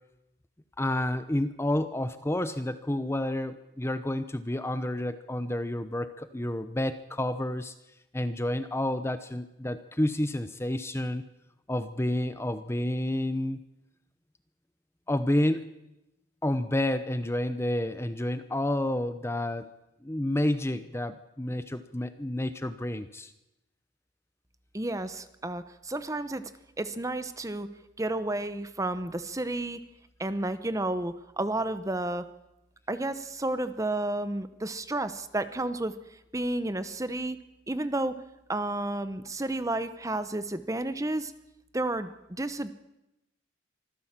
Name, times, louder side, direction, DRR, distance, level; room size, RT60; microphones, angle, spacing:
voice 1, 0.8-7.7 8.1-11.2 11.7-13.6 15.1-15.7 16.4-19.7 20.0-23.3, left 1 dB, 15° left, 12 dB, 0.8 m, -30 dB
voice 2, 24.7-26.5 26.8-27.7 28.0-29.8 30.2-32.3 32.9-35.9 36.3-37.4 37.7-38.2 38.5-41.3 41.7-42.7, right 2 dB, 15° right, 12 dB, 0.9 m, -31 dB
25.0 x 14.5 x 7.5 m, 0.91 s
head